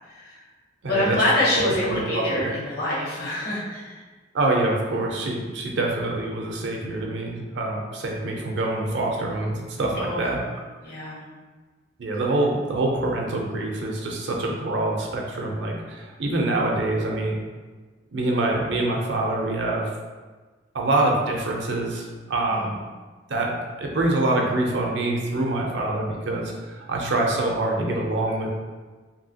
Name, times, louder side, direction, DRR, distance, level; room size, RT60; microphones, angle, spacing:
voice 1, 0.1-0.4 0.9-4.0 10.0-10.2 10.8-11.3 22.6-22.7, left 1 dB, 55° left, -6 dB, 1.0 m, -25 dB
voice 2, 0.8-1.2 1.6-2.5 4.3-10.4 12.0-17.4 18.1-19.9 20.7-22.8 23.3-28.5, right 2 dB, 70° right, 0 dB, 0.5 m, -25 dB
2.9 x 2.7 x 2.7 m, 1.3 s
head